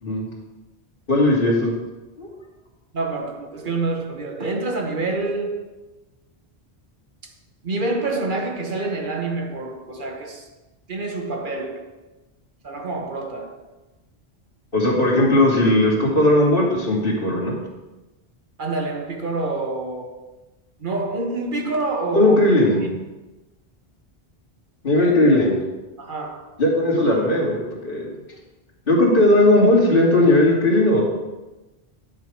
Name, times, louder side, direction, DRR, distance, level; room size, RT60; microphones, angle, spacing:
voice 1, 1.1-1.7 2.2-2.3 14.7-17.5 22.1-22.8 24.8-25.6 26.6-28.1 28.9-31.0, left 1 dB, 60° left, 2.6 m, -17 dB
voice 2, 2.9-5.8 7.6-10.5 10.9-11.9 12.6-13.6 18.6-20.3 20.8-22.4 22.8-22.9 26.0-26.6, right 3 dB, 50° right, 1.3 m, -27 dB
11.0 x 6.9 x 4.7 m
omnidirectional pair, 1.1 m